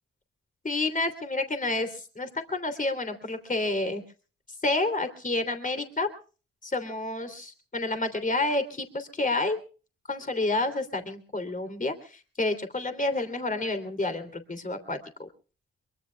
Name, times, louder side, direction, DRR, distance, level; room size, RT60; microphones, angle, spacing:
voice 1, 0.6-4.0 4.6-6.1 6.6-9.6 10.1-15.0, left 2 dB, 25° left, 9 dB, 3.0 m, -29 dB
23.5 x 23.0 x 2.3 m, 0.37 s
supercardioid pair, 50°, 30 cm